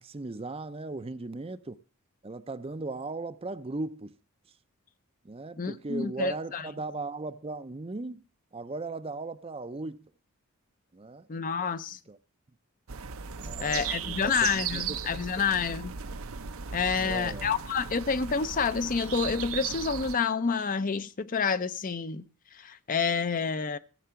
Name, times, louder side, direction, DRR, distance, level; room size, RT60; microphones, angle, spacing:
voice 1, 0.0-1.8 2.2-4.1 5.2-8.2 8.5-10.1 10.9-11.3 12.1-12.2 13.4-15.0 17.0-17.5, right 3 dB, 25° right, 0.5 m, -37 dB
voice 2, 5.6-6.7 11.3-12.0 13.6-15.9 16.7-22.3 22.5-23.8, left 5 dB, 40° left, 0.6 m, -28 dB
sound 1, 12.9-20.1, right 7 dB, 70° right, 0.8 m, -36 dB
15.0 x 7.7 x 5.8 m
head